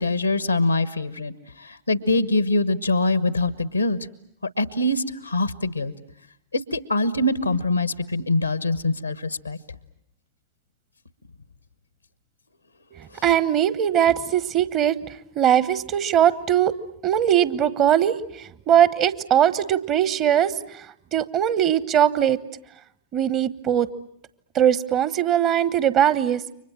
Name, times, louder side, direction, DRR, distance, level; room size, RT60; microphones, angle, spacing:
voice 1, 0.0-1.3 1.9-4.0 4.6-5.9 6.5-9.6, left 2 dB, 80° left, 16 dB, 1.1 m, -23 dB
voice 2, 12.9-15.0 15.3-16.7 17.0-18.1 18.7-20.5 21.1-22.4 23.1-23.9 24.5-26.4, right 10 dB, 35° right, 16 dB, 1.2 m, -20 dB
29.5 x 24.5 x 7.2 m, 0.73 s
figure-of-eight pair, 90°, 0 cm